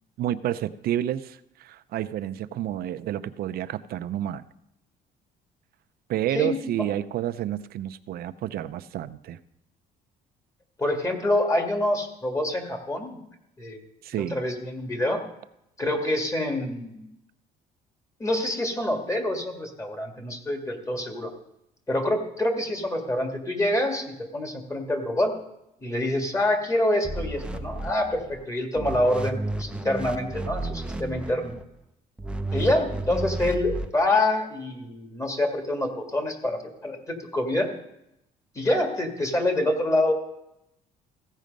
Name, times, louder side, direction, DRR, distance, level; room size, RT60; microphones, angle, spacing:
voice 1, 0.2-4.4 6.1-9.4 14.0-14.4, right 12 dB, 65° right, 13 dB, 0.6 m, -30 dB
voice 2, 6.3-6.9 10.8-13.2 13.6-13.8 14.1-15.2 15.8-17.1 18.2-21.3 21.9-25.3 25.8-31.5 32.5-37.7 38.6-40.1, left 1 dB, 20° left, 4 dB, 1.9 m, -26 dB
sound 1, 27.0-28.4 28.8-31.6 32.2-33.9, right 2 dB, 5° right, 0.6 m, -32 dB
15.0 x 6.4 x 5.2 m, 0.83 s
cardioid pair, 110°, 17 cm